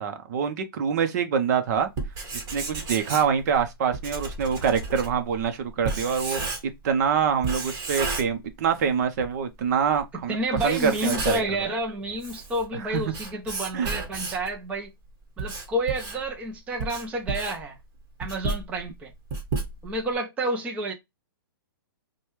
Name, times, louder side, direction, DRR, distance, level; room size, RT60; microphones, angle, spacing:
voice 1, 0.0-1.9 2.3-6.4 6.8-10.4 10.6-11.4 12.8-13.1 13.7-13.9, right 7 dB, 50° right, 0.7 m, -25 dB
Writing, 1.8-6.9 7.4-8.9 9.2-9.3 9.9-10.0 10.5-11.6 12.0-14.5 15.1-20.1, right 3 dB, 25° right, 1.4 m, -33 dB
voice 2, 10.3-14.9 15.4-17.8 18.2-19.1 19.8-20.9, right 1 dB, 10° right, 0.6 m, -29 dB
4.9 x 2.3 x 3.1 m
hypercardioid pair, 150°, 12 cm